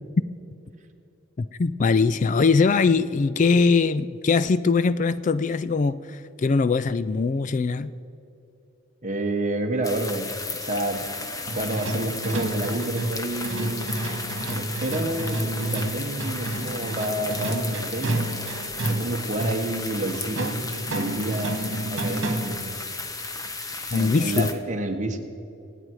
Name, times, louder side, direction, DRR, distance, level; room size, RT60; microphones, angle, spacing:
voice 1, 1.4-7.9 23.9-24.5, left 4 dB, 35° left, 14 dB, 0.3 m, -21 dB
voice 2, 9.0-11.0 11.5-13.9 14.5-18.2 18.8-20.6 20.9-22.7 23.9-25.2, right 1 dB, 35° right, 3 dB, 1.5 m, -29 dB
sound 1, 9.8-24.5, left 3 dB, 15° left, 1.0 m, -34 dB
sound 2, 11.5-22.7, right 1 dB, 65° right, 1.9 m, -30 dB
26.0 x 9.0 x 4.8 m, 2.9 s
head